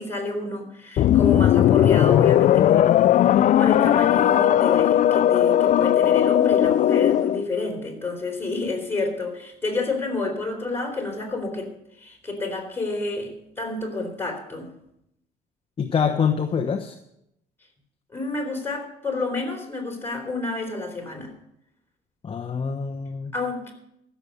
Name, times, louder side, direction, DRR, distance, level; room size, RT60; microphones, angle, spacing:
voice 1, 0.0-3.0 3.6-11.7 12.0-14.7 18.1-21.3 23.3-23.7, left 3 dB, 15° left, 2 dB, 3.9 m, -29 dB
sound 1, 1.0-7.4, left 11 dB, 50° left, 0.4 m, -18 dB
voice 2, 15.8-16.9 22.2-23.3, left 6 dB, 30° left, 5 dB, 1.0 m, -25 dB
15.0 x 7.0 x 6.6 m, 0.80 s
cardioid pair, 110°, 17 cm